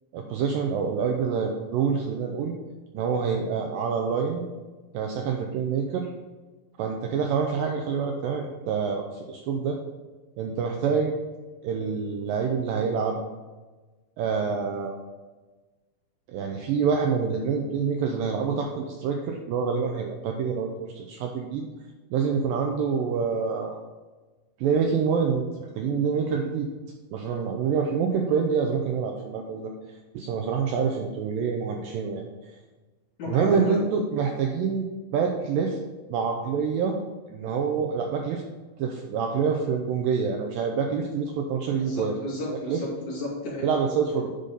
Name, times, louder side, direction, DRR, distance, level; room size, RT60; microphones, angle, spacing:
voice 1, 0.1-2.5 2.9-4.4 4.9-6.1 6.8-9.8 10.4-11.2 11.6-13.2 14.2-15.0 16.3-21.7 22.1-23.8 24.6-26.7 27.1-29.7 30.1-32.5 33.3-34.9 35.1-35.8 36.1-37.0 37.3-38.4 38.8-42.2 42.7-42.8 43.6-44.3, right 6 dB, 80° right, 2 dB, 2.1 m, -26 dB
voice 2, 33.2-33.8 41.8-43.7, left 2 dB, 50° left, -7 dB, 3.8 m, -33 dB
10.5 x 3.9 x 5.2 m, 1.3 s
omnidirectional pair, 4.5 m